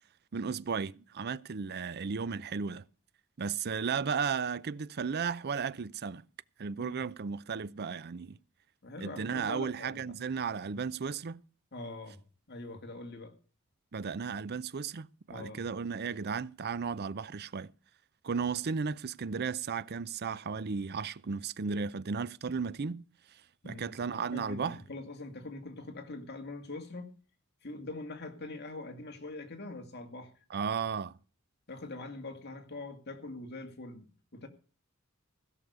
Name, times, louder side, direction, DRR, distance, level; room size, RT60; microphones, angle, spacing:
voice 1, 0.3-2.9 3.4-6.2 6.6-8.4 9.0-11.4 13.9-17.7 18.2-23.0 23.6-24.8 30.5-31.2, right 5 dB, 50° right, 0.5 m, -34 dB
voice 2, 8.8-10.0 11.7-12.2 12.5-13.3 15.3-15.6 23.6-27.1 27.6-30.3 31.7-34.5, left 2 dB, 50° left, 2.2 m, -43 dB
16.5 x 6.6 x 6.8 m
head